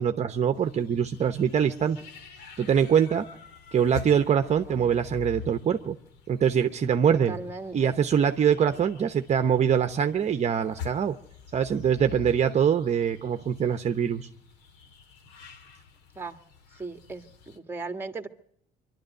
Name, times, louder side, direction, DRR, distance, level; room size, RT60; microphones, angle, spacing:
voice 1, 0.0-2.0 2.6-3.3 3.7-6.0 6.3-7.4 7.7-11.2 11.5-14.3, right 8 dB, 40° right, 8 dB, 1.0 m, -24 dB
sound 1, 0.5-17.6, left 8 dB, 90° left, 2.3 m, -46 dB
voice 2, 7.1-8.0 16.1-16.4 16.7-18.3, right 3 dB, 15° right, 7 dB, 1.7 m, -37 dB
25.0 x 12.0 x 9.0 m, 0.71 s
cardioid pair, 110°, 17 cm